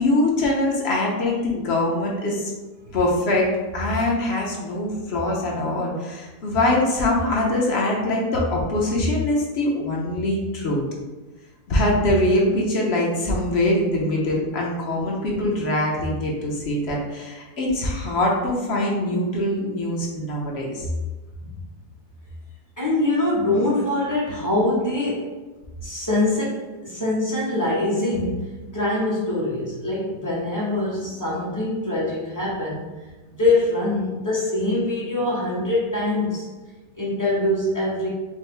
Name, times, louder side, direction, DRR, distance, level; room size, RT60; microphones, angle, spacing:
voice 1, 0.0-2.5 2.9-10.8 11.7-20.9, left 1 dB, 55° left, -2 dB, 0.8 m, -23 dB
voice 2, 22.8-25.3 25.8-32.9 33.2-36.5 36.9-38.1, left 2 dB, 15° left, -7 dB, 0.9 m, -24 dB
5.2 x 2.1 x 3.2 m, 1.2 s
omnidirectional pair, 1.7 m